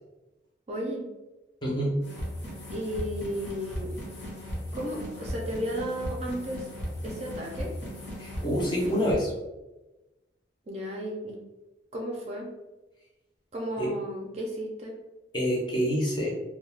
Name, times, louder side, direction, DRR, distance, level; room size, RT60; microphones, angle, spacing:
voice 1, 0.7-1.0 2.7-3.9 4.7-6.7 7.0-7.7 10.7-11.3 11.9-12.5 13.5-14.9, equal, 35° right, -1 dB, 0.4 m, -34 dB
voice 2, 1.6-2.0 8.2-9.3 13.8-13.9 15.3-16.3, equal, 25° left, -3 dB, 0.6 m, -27 dB
sound 1, 2.0-9.1, equal, 65° left, 0.9 m, -37 dB
2.3 x 2.2 x 3.2 m, 1.1 s
head